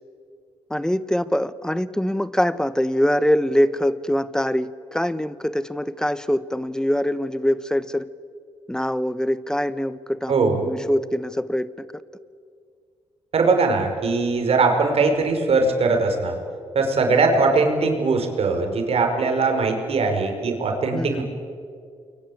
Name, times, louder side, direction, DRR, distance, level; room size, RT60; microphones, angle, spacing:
voice 1, 0.7-8.1 8.7-11.9 20.9-21.2, equal, 5° left, 15 dB, 1.1 m, -23 dB
voice 2, 10.3-10.6 13.3-16.3 16.7-21.2, right 3 dB, 60° right, 4 dB, 5.1 m, -20 dB
29.0 x 22.5 x 8.6 m, 2.2 s
cardioid pair, 70°, 11 cm